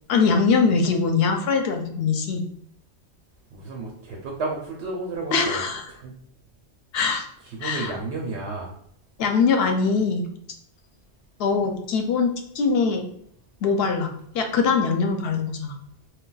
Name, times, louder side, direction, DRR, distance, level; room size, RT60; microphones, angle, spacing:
voice 1, 0.1-2.4 5.3-5.8 6.9-7.2 7.6-7.9 9.2-10.3 11.4-13.0 13.6-15.8, left 5 dB, 70° left, 4 dB, 0.8 m, -22 dB
voice 2, 3.5-6.1 7.4-8.7, right 3 dB, 85° right, -1 dB, 0.9 m, -32 dB
2.2 x 2.2 x 3.8 m, 0.67 s
omnidirectional pair, 1.1 m